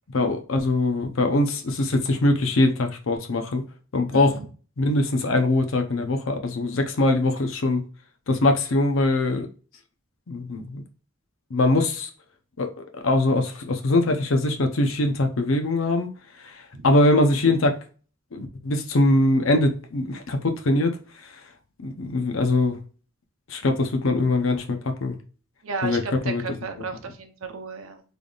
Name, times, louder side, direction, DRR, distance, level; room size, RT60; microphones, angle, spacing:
voice 1, 0.1-3.6 3.9-4.3 4.8-7.8 8.3-9.5 10.3-10.8 11.5-12.1 12.6-12.7 13.0-16.1 16.4-17.8 18.3-21.0 21.2-21.3 21.8-22.8 23.5-25.2 25.8-26.4, left 2 dB, 75° left, 0.7 m, -22 dB
voice 2, 4.1-4.5 16.7-16.9 25.6-28.0, right 4 dB, 85° right, 0.7 m, -34 dB
3.8 x 3.4 x 2.3 m
head